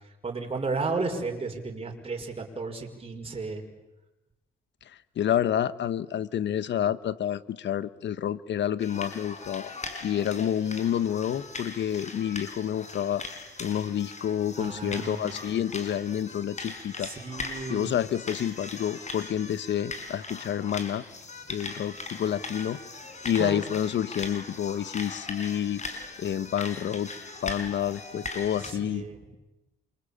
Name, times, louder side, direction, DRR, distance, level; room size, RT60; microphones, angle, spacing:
voice 1, 0.2-3.6 14.6-15.4 17.0-17.9 23.3-23.6 28.6-29.2, right 3 dB, 30° right, 2 dB, 5.9 m, -33 dB
voice 2, 5.2-9.7 10.0-13.3 13.6-17.1 17.7-21.0 21.5-22.8 23.2-25.8 26.2-27.1 27.4-29.1, left 10 dB, 65° left, 16 dB, 1.3 m, -29 dB
sound 1, 8.8-28.7, left 3 dB, 35° left, 5.5 m, -40 dB
28.0 x 24.0 x 8.8 m, 1.0 s
cardioid pair, 90°, 20 cm